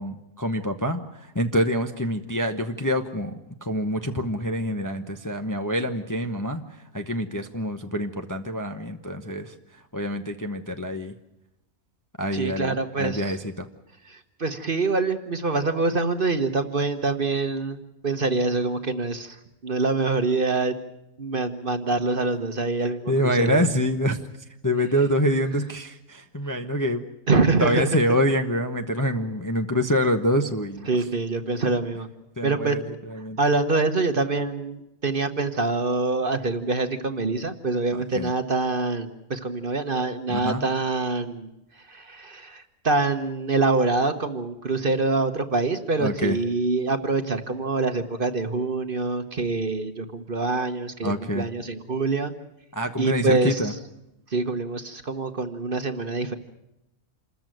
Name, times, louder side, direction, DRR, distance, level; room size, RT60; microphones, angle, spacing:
voice 1, 0.0-3.3 3.6-6.6 6.9-9.5 9.9-11.1 12.2-13.7 23.1-24.2 24.6-27.0 27.6-30.9 32.4-33.4 37.9-38.3 40.3-40.7 46.0-46.4 51.0-51.5 52.7-53.7, equal, 15° left, 5 dB, 0.8 m, -26 dB
voice 2, 12.3-13.4 14.0-19.4 19.6-20.7 21.2-23.7 27.3-28.2 30.9-32.1 32.4-32.8 33.4-41.5 41.8-52.3 53.0-53.7 54.3-56.4, right 3 dB, 40° right, 8 dB, 1.2 m, -25 dB
27.5 x 14.0 x 9.1 m, 0.90 s
omnidirectional pair, 1.5 m